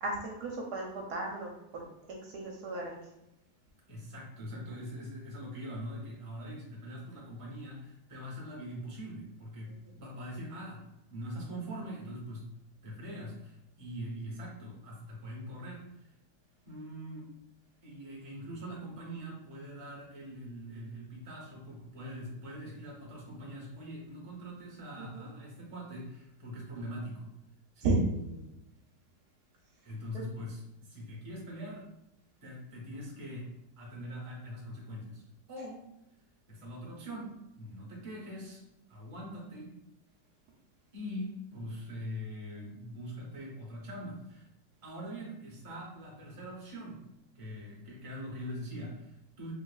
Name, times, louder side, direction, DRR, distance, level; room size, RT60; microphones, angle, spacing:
voice 1, 0.0-3.0 9.7-9.9 25.0-25.3 27.8-28.3 30.1-30.2, right 3 dB, 70° right, 0 dB, 1.1 m, -34 dB
voice 2, 3.9-10.8 11.1-12.5 12.8-16.1 16.7-17.3 17.8-27.3 27.7-28.0 29.9-31.9 32.4-35.2 35.5-35.9 36.5-38.6 38.9-39.7 40.9-44.5 44.8-47.0 47.3-49.5, equal, 35° right, -3 dB, 0.5 m, -42 dB
3.3 x 3.3 x 2.3 m, 0.86 s
omnidirectional pair, 2.0 m